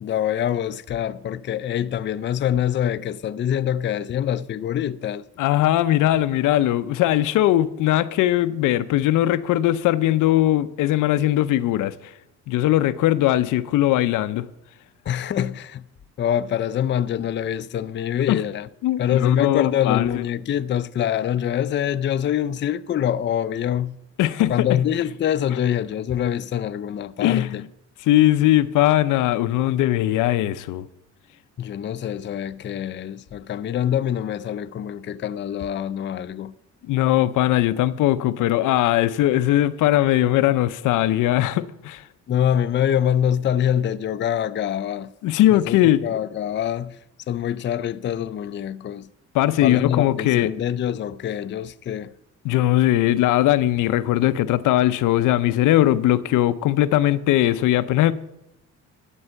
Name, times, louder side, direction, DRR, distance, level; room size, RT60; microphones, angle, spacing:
voice 1, 0.0-5.2 15.1-15.8 16.2-18.7 19.0-24.0 24.5-27.6 31.6-36.5 42.3-45.1 45.5-47.0 47.3-49.1 49.6-52.1, left 10 dB, 40° left, 0.4 m, -25 dB
voice 2, 5.4-11.9 12.5-14.5 18.3-18.4 18.8-20.2 24.2-24.8 27.2-27.7 28.0-30.9 36.9-42.0 45.2-46.0 49.3-50.5 52.4-58.1, left 14 dB, 85° left, 0.6 m, -20 dB
12.5 x 5.5 x 8.7 m
cardioid pair, 90°, 30 cm